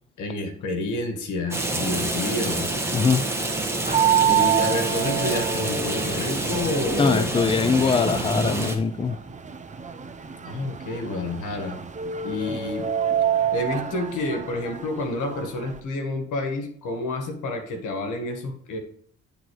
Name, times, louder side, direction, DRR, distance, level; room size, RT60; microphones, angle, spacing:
voice 1, 0.2-2.7 4.3-7.3 8.4-8.6 10.5-11.8 12.2-12.9 13.5-18.8, left 2 dB, 80° left, 1.7 m, -29 dB
Rain, 1.5-8.8, right 2 dB, 10° right, 1.7 m, -27 dB
voice 2, 2.9-3.2 7.0-9.2 12.5-12.6, left 5 dB, 20° left, 0.5 m, -22 dB
sound 1, 3.9-15.8, right 9 dB, 25° right, 0.8 m, -27 dB
10.5 x 3.9 x 4.7 m
cardioid pair, 90°, 30 cm